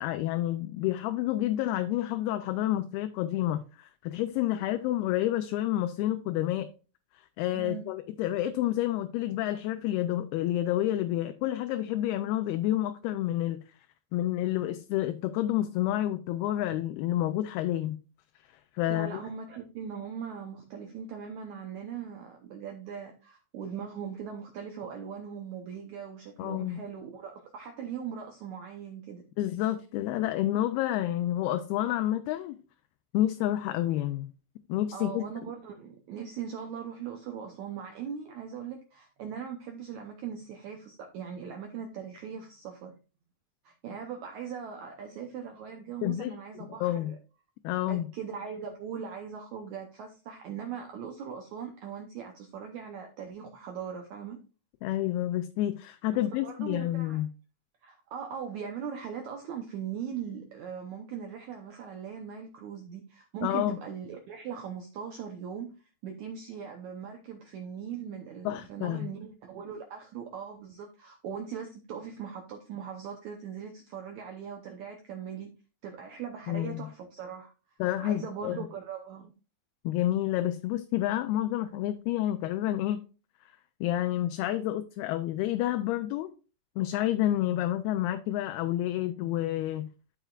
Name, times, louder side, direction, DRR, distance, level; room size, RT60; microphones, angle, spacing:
voice 1, 0.0-6.7 7.4-13.6 14.1-18.0 18.8-19.1 26.4-26.8 29.4-32.6 33.1-34.3 34.7-35.2 46.0-46.4 46.8-47.1 47.6-48.1 54.8-57.3 63.4-63.8 68.5-69.1 76.5-76.8 77.8-78.6 79.8-83.0 83.8-86.3 86.8-89.9, left 13 dB, 85° left, 2.5 m, -29 dB
voice 2, 7.5-7.9 18.9-29.2 34.9-42.9 43.7-47.2 47.9-54.4 56.1-57.2 57.8-75.5 75.8-77.5 78.0-79.3, right 7 dB, 80° right, 1.7 m, -40 dB
13.0 x 5.6 x 2.4 m
omnidirectional pair, 4.5 m